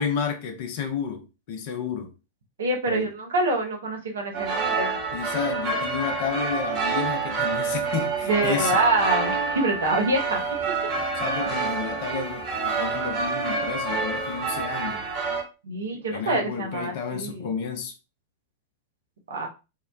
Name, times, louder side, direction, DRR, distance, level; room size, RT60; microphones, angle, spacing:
voice 1, 0.0-2.1 2.9-3.1 5.1-8.8 11.1-15.1 15.9-17.9, left 6 dB, 50° left, 0.5 m, -31 dB
voice 2, 2.6-5.0 8.3-10.4 15.6-17.5 19.3-19.5, right 2 dB, 65° right, 0.7 m, -26 dB
sound 1, 4.3-15.4, right 4 dB, 35° right, 1.0 m, -27 dB
2.8 x 2.1 x 2.4 m
figure-of-eight pair, 95°, 0 cm